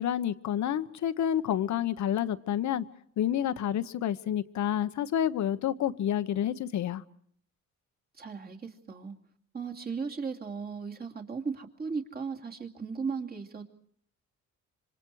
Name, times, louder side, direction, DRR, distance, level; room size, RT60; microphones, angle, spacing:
voice 1, 0.0-2.8 3.2-7.0, left 10 dB, 70° left, 12 dB, 1.1 m, -29 dB
voice 2, 8.1-9.2 9.5-13.6, right 5 dB, 30° right, 1 dB, 2.7 m, -36 dB
27.0 x 24.5 x 4.8 m, 0.65 s
cardioid pair, 90°, 30 cm